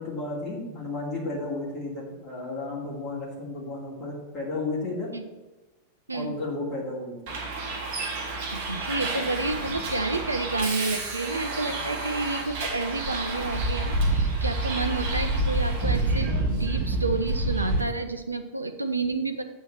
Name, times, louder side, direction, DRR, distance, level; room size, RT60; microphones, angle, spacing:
voice 1, 0.0-5.1 6.1-7.3, left 2 dB, 25° left, -5 dB, 2.8 m, -33 dB
Bus, 7.3-17.8, right 2 dB, 45° right, 1.6 m, -28 dB
voice 2, 8.5-19.4, right 3 dB, 80° right, 8 dB, 0.6 m, -30 dB
8.1 x 4.5 x 6.7 m, 1.1 s
figure-of-eight pair, 90°, 0 cm